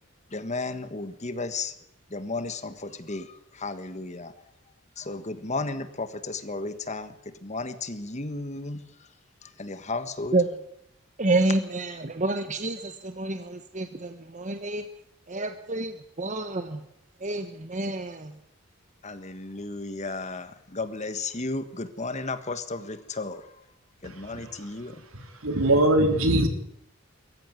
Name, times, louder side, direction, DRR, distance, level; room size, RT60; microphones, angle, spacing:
voice 1, 0.3-1.7 2.1-4.3 5.0-7.1 7.4-9.1 9.4-10.4 19.0-23.5 24.0-25.0, left 3 dB, 35° left, 1.6 m, -34 dB
voice 2, 11.2-14.8 15.3-15.9 16.2-16.8 17.2-18.3, right 2 dB, 35° right, 1.2 m, -28 dB
voice 3, 25.4-26.5, right 1 dB, 75° right, 3.7 m, -20 dB
22.5 x 14.5 x 9.6 m
head